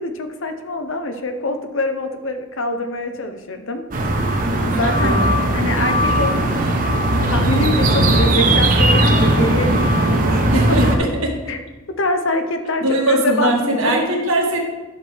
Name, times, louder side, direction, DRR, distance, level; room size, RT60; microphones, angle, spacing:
voice 1, 0.0-3.9 4.6-5.1 5.5-6.8 7.3-10.8 11.5-11.6 12.0-14.0, left 2 dB, 65° left, 7 dB, 0.8 m, -24 dB
sound 1, 3.9-11.0, right 1 dB, 40° right, 0.9 m, -17 dB
voice 2, 5.0-5.5 10.5-11.1 12.8-14.6, right 1 dB, 80° right, 0 dB, 1.6 m, -20 dB
10.5 x 6.3 x 3.4 m, 1.2 s
head